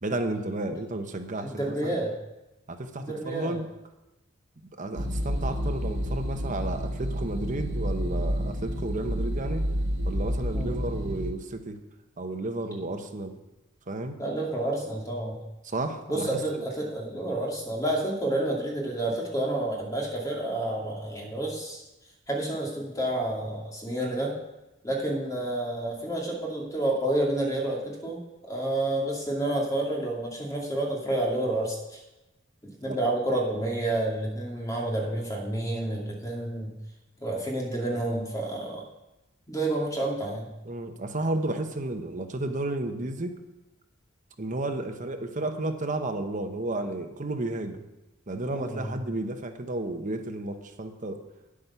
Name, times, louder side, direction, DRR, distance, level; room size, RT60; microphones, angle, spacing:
voice 1, 0.0-2.0 2.7-3.7 4.7-9.6 10.0-11.8 12.2-13.4 13.9-14.2 15.6-16.7 32.9-33.0 40.6-43.3 44.4-47.8 48.3-51.2, right 2 dB, 40° right, 5 dB, 1.0 m, -32 dB
voice 2, 1.4-2.1 3.0-3.6 10.5-10.7 14.2-15.4 16.1-21.8 22.3-24.4 24.8-32.0 32.8-36.7 37.2-38.8 39.5-40.5 48.5-49.0, right 1 dB, 20° left, -2 dB, 2.4 m, -29 dB
sound 1, 4.9-11.3, equal, 70° right, 1.1 m, -29 dB
9.9 x 8.6 x 5.7 m, 1.0 s
head